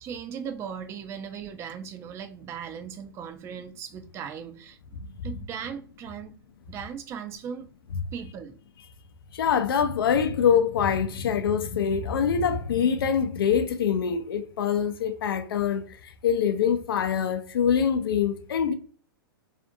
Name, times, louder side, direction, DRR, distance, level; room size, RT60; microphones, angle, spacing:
voice 1, 0.0-6.4 6.7-7.7 8.1-8.6, right 7 dB, 20° right, 0.3 m, -38 dB
voice 2, 9.3-18.7, left 7 dB, 70° left, 0.5 m, -24 dB
2.5 x 2.4 x 2.6 m
hypercardioid pair, 115°, 13 cm